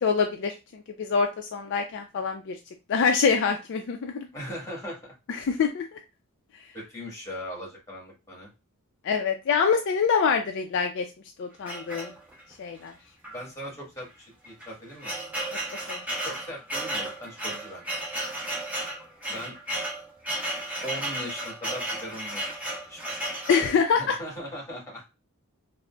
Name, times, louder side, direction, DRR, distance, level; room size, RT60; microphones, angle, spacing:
voice 1, 0.0-2.6 2.9-4.3 5.3-6.0 9.0-11.0 11.4-12.1 12.6-12.9 15.9-16.0 23.5-24.2, left 6 dB, 55° left, 5 dB, 0.3 m, -25 dB
voice 2, 4.3-5.1 6.7-8.5 13.3-14.1 14.4-15.2 16.2-17.9 19.3-19.5 20.8-22.4 22.9-23.0 23.9-25.0, equal, 15° left, -3 dB, 1.3 m, -39 dB
sound 1, 11.7-12.5 13.2-13.4 13.7-13.8 14.4-23.8, right 1 dB, 5° right, 0.8 m, -33 dB
3.7 x 2.0 x 2.2 m, 0.27 s
head